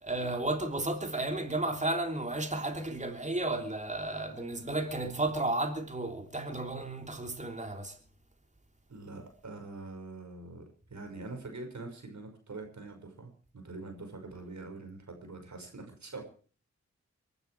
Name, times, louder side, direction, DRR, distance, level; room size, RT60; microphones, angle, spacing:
voice 1, 0.0-8.0, right 2 dB, 25° right, 3.4 m, -33 dB
voice 2, 8.9-10.6 10.9-16.3, right 3 dB, 70° right, 5.7 m, -44 dB
23.5 x 12.0 x 4.8 m
cardioid pair, 45°, 29 cm